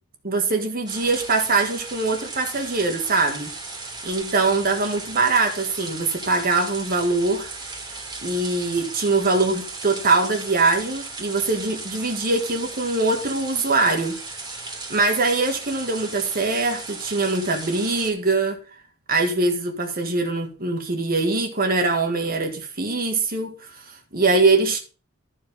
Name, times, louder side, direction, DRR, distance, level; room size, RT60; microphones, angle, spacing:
voice 1, 0.2-3.5 4.0-7.5 8.2-14.2 14.5-14.6 14.9-18.6 19.1-24.8, right 3 dB, 45° right, 1.7 m, -22 dB
sound 1, 0.9-18.1, right 3 dB, 20° right, 2.6 m, -36 dB
13.0 x 4.8 x 5.3 m
head